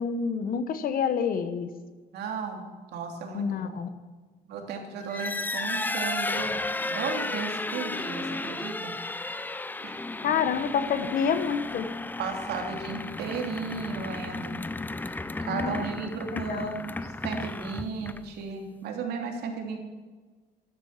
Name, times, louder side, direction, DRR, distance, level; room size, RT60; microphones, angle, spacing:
voice 1, 0.0-1.7 3.3-3.9 10.2-11.9 15.4-15.8 16.3-16.7, left 6 dB, 60° left, 10 dB, 1.3 m, -28 dB
voice 2, 2.1-3.8 4.4-6.5 6.9-8.9 9.8-10.0 12.2-14.6 15.1-19.8, right 5 dB, 75° right, 3 dB, 3.0 m, -35 dB
sound 1, 5.0-18.4, left 2 dB, 10° left, 0.6 m, -34 dB
12.5 x 12.0 x 7.5 m, 1.4 s
cardioid pair, 110°, 17 cm